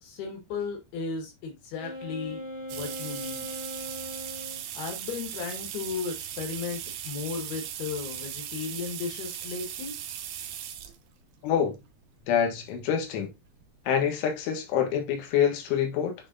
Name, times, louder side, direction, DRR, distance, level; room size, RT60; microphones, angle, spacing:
voice 1, 0.0-2.4 2.7-3.6 4.7-9.9, left 5 dB, 65° left, 3.3 m, -35 dB
Wind instrument woodwind instrument, 1.8-4.6, left 1 dB, 25° right, 0.9 m, -39 dB
sound 1, 2.7-11.0 11.8-11.9 13.2-13.3 13.6-13.7 14.0-14.1, right 10 dB, 90° right, 2.0 m, -38 dB
voice 2, 11.4-11.8 12.3-13.3 13.9-16.2, left 8 dB, 85° left, 3.8 m, -26 dB
9.7 x 4.0 x 2.7 m
omnidirectional pair, 5.3 m